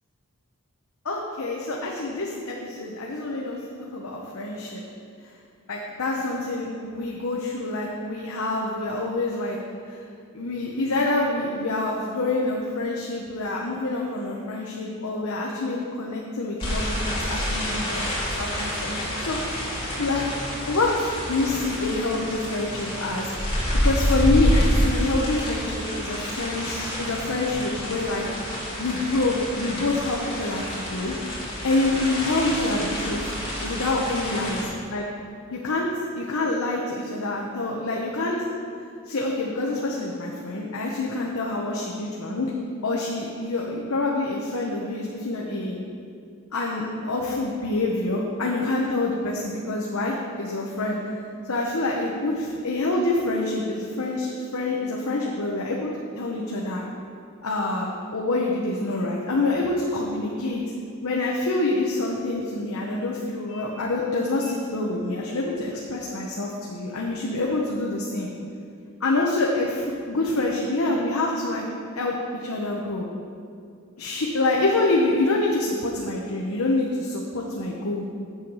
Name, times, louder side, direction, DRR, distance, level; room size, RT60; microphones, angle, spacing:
voice 1, 1.0-3.6 3.9-4.8 5.7-9.6 9.9-10.0 10.3-18.0 18.4-20.3 20.7-20.9 21.3-23.3 23.7-28.2 28.8-31.1 31.6-33.3 33.6-34.6 34.9-35.0 35.5-38.4 39.1-42.5 42.8-45.8 46.5-51.0 51.5-56.8 57.4-60.6 61.0-68.3 69.0-71.6 71.9-73.1 74.0-78.0, left 2 dB, 75° left, -1 dB, 0.9 m, -26 dB
sound 1, 16.6-34.7, equal, 25° left, 2.4 m, -28 dB
7.8 x 7.3 x 5.5 m, 2.4 s
head